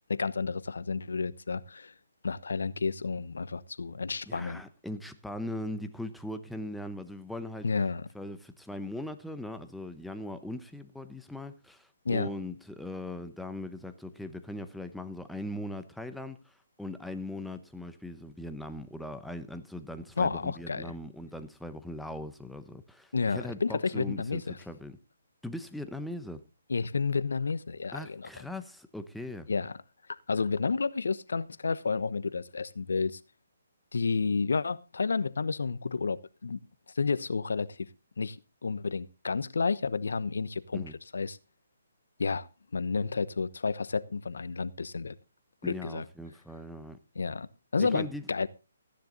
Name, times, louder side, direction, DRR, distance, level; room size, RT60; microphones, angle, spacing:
voice 1, 0.1-1.9 2.2-4.6 7.6-8.1 12.0-12.3 20.2-20.9 23.1-24.6 26.7-28.3 29.5-29.7 30.1-33.2 33.9-36.6 36.9-37.9 38.2-38.4 38.6-40.8 41.1-41.4 42.2-42.5 42.7-45.2 45.6-46.0 47.1-47.5 47.7-48.5, left 4 dB, 80° left, 1.0 m, -31 dB
voice 2, 4.3-7.7 8.1-25.0 25.4-26.4 27.9-29.5 40.7-40.9 45.6-47.0 47.8-48.5, left 1 dB, ahead, 1.0 m, -40 dB
15.0 x 10.5 x 4.0 m
hypercardioid pair, 150°, 0 cm